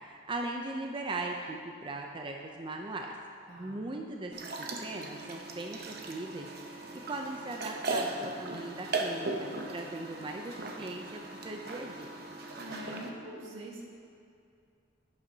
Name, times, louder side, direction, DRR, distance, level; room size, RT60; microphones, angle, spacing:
voice 1, 0.0-3.1 3.6-6.5 7.1-12.1, right 2 dB, 25° right, 2 dB, 0.5 m, -39 dB
voice 2, 3.5-3.8 12.6-13.9, right 1 dB, 90° right, -3 dB, 1.6 m, -44 dB
sound 1, 4.3-13.1, right 3 dB, 55° right, 0.8 m, -38 dB
11.0 x 9.7 x 2.8 m, 2.4 s
head